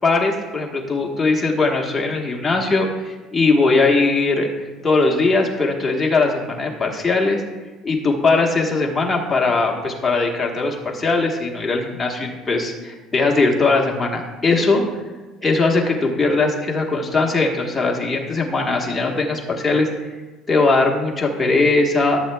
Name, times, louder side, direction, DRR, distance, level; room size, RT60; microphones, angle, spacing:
voice 1, 0.0-4.5 4.8-7.4 7.8-14.8 15.4-19.9 20.5-22.2, left 3 dB, 15° left, -1 dB, 1.2 m, -20 dB
14.5 x 8.0 x 2.2 m, 1.3 s
cardioid pair, 160°, 0 cm